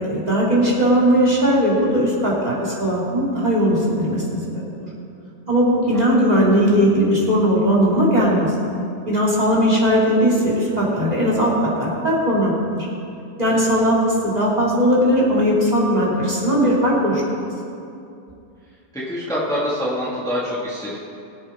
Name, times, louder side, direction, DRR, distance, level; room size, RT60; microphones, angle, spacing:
voice 1, 0.1-4.9 5.5-8.5 9.1-11.5 11.8-12.9 13.4-17.2, equal, 20° right, -5 dB, 2.7 m, -18 dB
voice 2, 5.9-6.2 13.5-13.9 18.9-21.0, equal, ahead, -7 dB, 1.8 m, -26 dB
23.0 x 7.9 x 3.6 m, 2.6 s
omnidirectional pair, 1.9 m